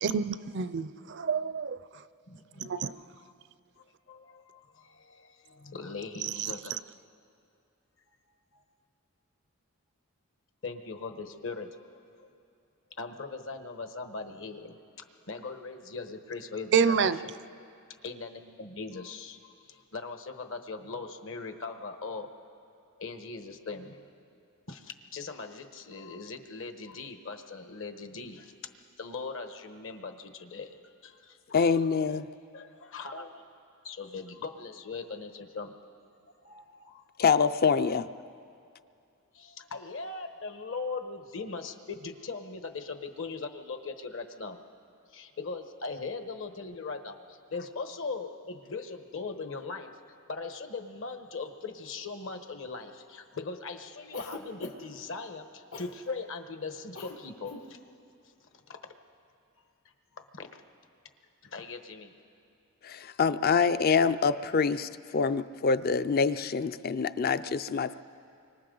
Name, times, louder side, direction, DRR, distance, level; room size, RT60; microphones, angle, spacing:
voice 1, 0.0-1.8 2.6-2.9 6.2-6.8 16.7-17.2, right 6 dB, 55° right, 0.4 m, -28 dB
voice 2, 2.3-3.1 3.8-6.9 8.5-8.6 10.6-12.3 13.0-17.1 18.0-22.3 23.0-24.0 24.7-28.5 29.0-30.8 31.0-31.4 32.5-33.4 33.8-35.7 36.4-37.0 39.3-44.6 45.1-49.9 50.3-57.8 58.7-58.8 60.2-60.6 61.4-62.1, left 4 dB, 60° left, 1.2 m, -40 dB
voice 3, 31.5-32.3 37.2-38.1 62.8-67.9, left 5 dB, 45° left, 0.4 m, -25 dB
Cough, 54.1-55.0 55.7-56.0 56.9-57.2 57.4-57.7, left 3 dB, 80° left, 1.9 m, -42 dB
30.0 x 24.5 x 3.9 m
head